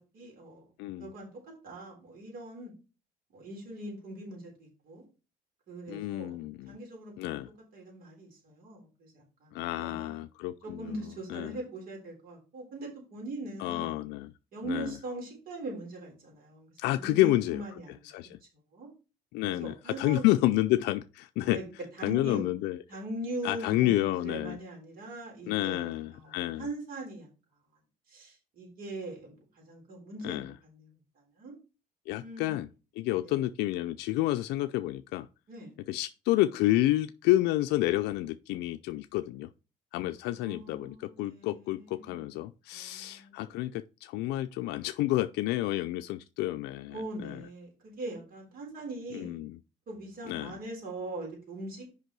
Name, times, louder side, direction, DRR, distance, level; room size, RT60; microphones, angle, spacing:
voice 1, 0.1-0.7 1.0-1.3 1.6-2.7 3.3-5.0 5.7-6.4 6.7-7.4 7.7-10.2 10.6-14.0 14.5-16.7 17.0-18.1 18.4-18.9 19.4-20.3 21.5-21.6 22.0-22.5 22.9-27.3 28.1-30.9 31.4-31.5 32.2-32.6 33.2-33.4 35.5-35.7 40.3-42.3 42.7-43.7 46.9-49.4 49.9-51.9, right 2 dB, 60° right, 3.9 m, -41 dB
voice 2, 0.8-1.1 5.9-6.8 7.2-7.5 9.5-11.0 11.3-11.6 13.6-14.3 14.6-15.0 16.8-17.8 18.0-18.4 19.3-21.6 22.0-22.8 23.4-24.6 25.5-26.7 30.2-30.5 32.1-32.7 33.0-35.3 35.9-39.5 39.9-47.4 49.1-49.6 50.3-50.6, left 16 dB, 90° left, 0.4 m, -29 dB
6.5 x 5.3 x 4.7 m
cardioid pair, 110°, 17 cm